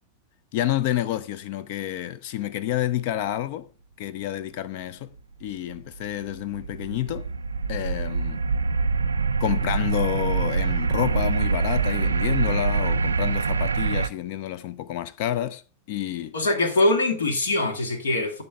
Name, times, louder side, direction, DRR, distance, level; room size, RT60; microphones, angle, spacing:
voice 1, 0.5-3.7 4.0-5.1 5.4-7.3 7.7-8.4 9.4-15.6 15.9-16.3, left 12 dB, 45° left, 0.5 m, -29 dB
sound 1, 5.7-14.1, right 4 dB, 75° right, 0.4 m, -25 dB
voice 2, 16.3-18.4, left 2 dB, 65° left, 1.7 m, -23 dB
10.0 x 6.6 x 3.4 m
figure-of-eight pair, 90°, 0 cm